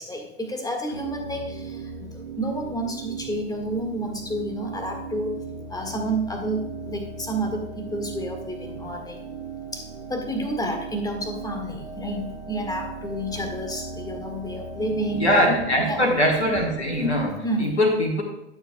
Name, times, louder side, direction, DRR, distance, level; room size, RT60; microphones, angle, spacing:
voice 1, 0.0-2.1 2.4-5.4 5.7-9.2 9.7-15.3 15.8-16.1 17.4-17.7, right 1 dB, 10° left, 3 dB, 1.6 m, -30 dB
sound 1, 0.9-17.3, right 4 dB, 90° right, 0.7 m, -37 dB
voice 2, 15.1-18.2, left 1 dB, 85° left, 1 dB, 1.4 m, -22 dB
11.5 x 7.1 x 2.2 m, 0.91 s
figure-of-eight pair, 80°, 33 cm